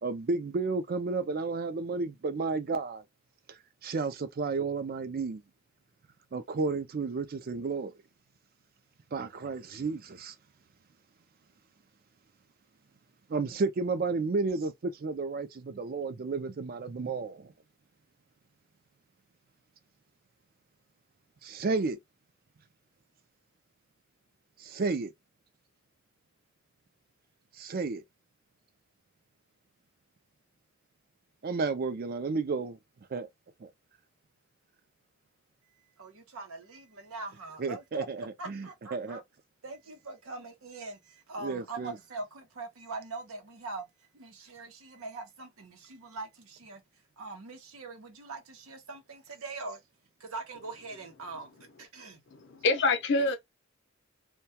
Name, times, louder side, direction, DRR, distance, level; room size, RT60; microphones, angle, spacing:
voice 1, 0.0-3.0 3.8-5.4 6.3-7.9 9.1-10.3 13.3-17.5 21.4-22.0 24.6-25.1 27.6-28.0 31.4-32.8 33.1-33.3 33.6-33.7 37.6-39.2 41.4-42.0, right 4 dB, 45° right, 0.4 m, -32 dB
voice 2, 36.0-39.2 39.6-43.9 44.1-46.8 47.2-49.8 50.2-51.5 51.8-52.2, right 3 dB, 90° right, 0.8 m, -42 dB
voice 3, 52.3-53.4, left 3 dB, 55° left, 0.5 m, -26 dB
2.2 x 2.2 x 2.7 m
head